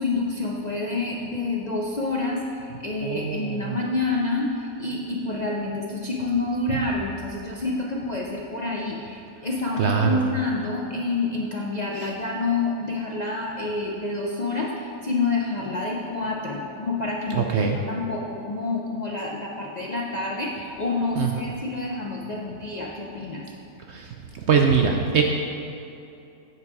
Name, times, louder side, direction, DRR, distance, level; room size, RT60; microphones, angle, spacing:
voice 1, 0.0-23.5, left 3 dB, 45° left, -3 dB, 0.5 m, -28 dB
voice 2, 3.0-3.8 9.8-10.2 17.3-17.8 21.2-21.3 23.9-24.1 24.5-25.2, right 6 dB, 65° right, 2 dB, 0.7 m, -22 dB
7.9 x 7.5 x 4.7 m, 2.7 s
omnidirectional pair, 1.6 m